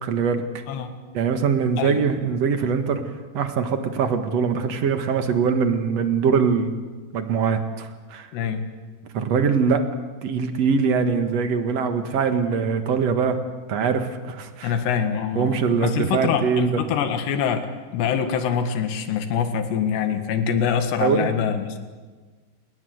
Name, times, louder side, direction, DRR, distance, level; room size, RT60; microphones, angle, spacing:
voice 1, 0.0-0.4 1.1-3.0 3.3-6.8 7.1-8.3 9.1-9.8 10.2-13.4 13.7-14.8 15.4-16.8 21.0-21.3, right 6 dB, 50° right, 7 dB, 2.1 m, -22 dB
voice 2, 8.3-8.6 14.6-17.7 17.9-21.8, left 7 dB, 85° left, 7 dB, 4.0 m, -24 dB
28.0 x 20.5 x 7.9 m, 1.4 s
omnidirectional pair, 4.8 m